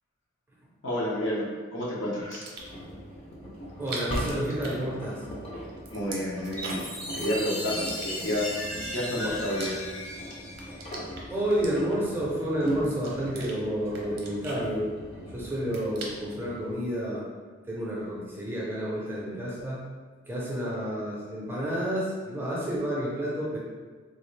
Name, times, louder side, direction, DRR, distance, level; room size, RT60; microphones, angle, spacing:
voice 1, 0.8-2.5 5.9-6.9 7.1-8.5 8.9-9.8, equal, 65° left, -5 dB, 0.9 m, -30 dB
sound 1, 2.2-2.9 3.7-5.4 5.6-7.0 7.7-8.6 9.1-10.2 10.5-12.2 12.7-13.6 13.9-15.2 15.5-16.4, right 3 dB, 50° right, 0.6 m, -42 dB
Engine, 2.6-16.7, equal, 30° left, 0.7 m, -40 dB
voice 2, 3.8-5.2 11.3-14.9 15.3-17.2 17.6-19.9 20.3-23.6, equal, 10° right, -6 dB, 0.6 m, -30 dB
Chime, 6.6-11.3, left 1 dB, 80° left, 1.3 m, -36 dB
3.6 x 2.4 x 3.2 m, 1.5 s
head